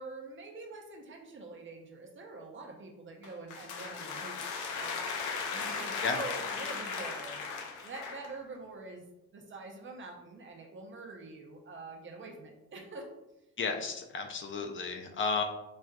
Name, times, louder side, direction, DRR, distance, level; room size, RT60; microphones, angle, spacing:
voice 1, 0.0-4.4 4.7-5.0 5.5-7.4 7.8-9.0 9.3-13.1, right 3 dB, 40° right, 2 dB, 0.6 m, -45 dB
sound 1, 3.2-8.3, left 5 dB, 85° left, 0.6 m, -37 dB
voice 2, 13.6-15.4, left 4 dB, 40° left, 5 dB, 0.4 m, -33 dB
4.3 x 2.3 x 2.3 m, 0.93 s
cardioid pair, 90°, 30 cm